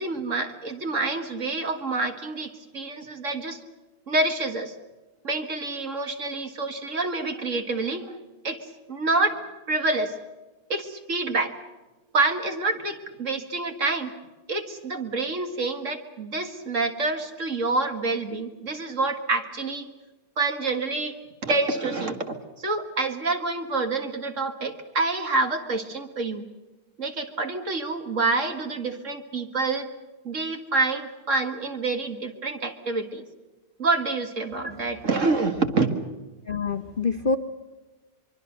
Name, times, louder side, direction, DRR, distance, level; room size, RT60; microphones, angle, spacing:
voice 1, 0.0-3.6 4.1-4.7 5.2-8.2 8.4-8.6 8.9-9.4 9.7-10.1 10.7-11.5 12.1-14.1 14.5-19.9 20.4-21.2 21.4-26.4 27.0-29.9 30.2-33.2 33.8-35.9, right 3 dB, 35° right, 7 dB, 2.1 m, -27 dB
voice 2, 34.6-35.0 36.5-37.4, left 4 dB, 85° left, 7 dB, 0.4 m, -27 dB
24.5 x 24.5 x 6.7 m, 1.2 s
omnidirectional pair, 2.4 m